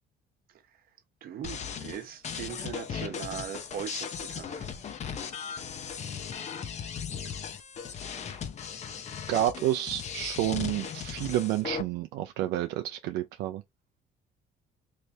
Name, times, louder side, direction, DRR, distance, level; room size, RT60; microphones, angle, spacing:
voice 1, 1.2-4.7, right 9 dB, 60° right, 0.9 m, -39 dB
sound 1, 1.4-11.8, left 7 dB, 40° left, 0.6 m, -37 dB
voice 2, 9.3-13.6, right 13 dB, 85° right, 0.4 m, -29 dB
3.2 x 2.7 x 3.3 m
cardioid pair, 110°, 17 cm